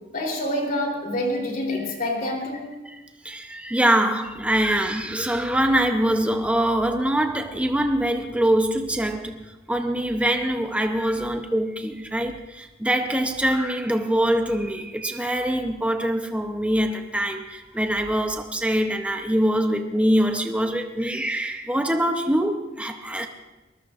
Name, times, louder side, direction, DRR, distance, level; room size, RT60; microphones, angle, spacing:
voice 1, 0.1-2.7, left 1 dB, 45° left, 3.7 m, -27 dB
voice 2, 2.8-9.4 9.7-23.3, right 1 dB, 5° right, 0.8 m, -24 dB
22.5 x 20.5 x 2.6 m
head